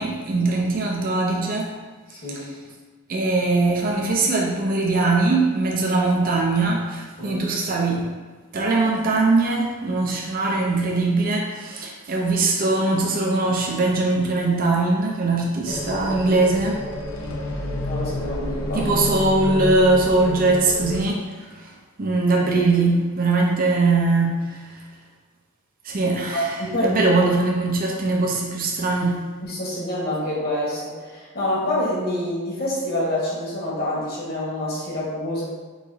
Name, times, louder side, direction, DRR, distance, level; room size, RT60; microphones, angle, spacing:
voice 1, 0.0-1.7 2.3-2.4 3.1-8.0 8.5-16.8 18.7-21.7 22.0-24.6 25.8-29.2, right 3 dB, 40° right, -2 dB, 0.5 m, -21 dB
voice 2, 2.1-2.5 7.2-7.4 17.9-18.9 26.3-27.0 29.4-35.4, left 1 dB, 45° left, -5 dB, 1.4 m, -27 dB
sound 1, 15.7-21.0, left 1 dB, 85° left, 0.7 m, -29 dB
4.7 x 3.9 x 2.7 m, 1.4 s
head